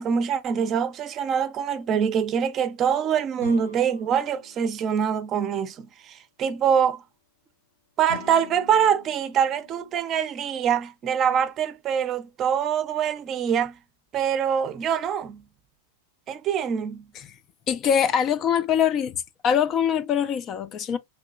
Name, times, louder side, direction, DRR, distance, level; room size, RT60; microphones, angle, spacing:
voice 1, 0.0-7.0 8.0-13.7 14.1-15.4 16.3-17.1, right 8 dB, 35° right, 0.5 m, -24 dB
sound 1, 3.4-5.4 8.1-10.2, left 4 dB, 80° left, 0.9 m, -45 dB
voice 2, 17.7-21.0, left 8 dB, 40° left, 0.4 m, -23 dB
3.1 x 2.9 x 2.3 m
hypercardioid pair, 100°, 0 cm